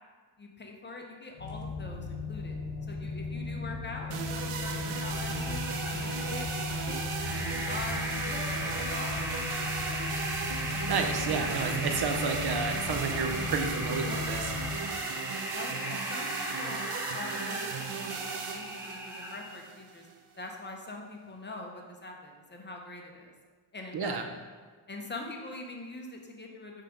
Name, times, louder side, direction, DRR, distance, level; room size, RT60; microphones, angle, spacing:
voice 1, 0.4-2.6 2.9-5.6 5.9-6.5 6.9-9.3 15.5-16.9 17.1-20.1 20.4-23.3 23.7-24.2 24.9-26.8, left 2 dB, 20° left, 1 dB, 0.9 m, -43 dB
sound 1, 1.3-14.8, left 3 dB, 80° left, 1.1 m, -37 dB
sound 2, 4.1-20.1, right 5 dB, 85° right, 0.8 m, -37 dB
sound 3, 5.0-19.6, equal, 5° right, 0.7 m, -38 dB
voice 2, 10.5-14.5 23.9-24.2, right 5 dB, 50° right, 5 dB, 0.8 m, -31 dB
5.6 x 3.7 x 5.1 m, 1.5 s
cardioid pair, 90°, 49 cm